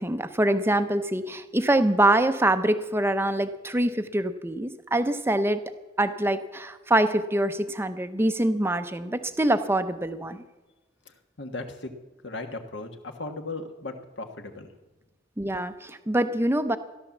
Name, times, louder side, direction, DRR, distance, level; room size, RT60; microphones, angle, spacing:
voice 1, 0.0-5.6 6.0-10.4 15.4-16.8, right 1 dB, 10° right, 10 dB, 0.7 m, -24 dB
voice 2, 11.0-11.9 12.2-14.7, left 2 dB, 65° left, 6 dB, 1.6 m, -37 dB
15.0 x 11.5 x 7.2 m, 1.1 s
head